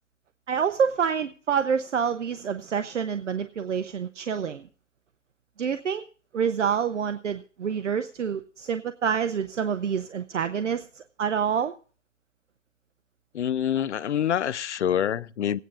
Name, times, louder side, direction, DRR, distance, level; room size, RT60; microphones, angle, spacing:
voice 1, 0.5-4.7 5.6-6.0 6.3-11.7, right 7 dB, 75° right, 0.7 m, -27 dB
voice 2, 13.3-15.6, left 9 dB, 65° left, 0.6 m, -26 dB
26.5 x 9.3 x 2.4 m
hypercardioid pair, 150°, 37 cm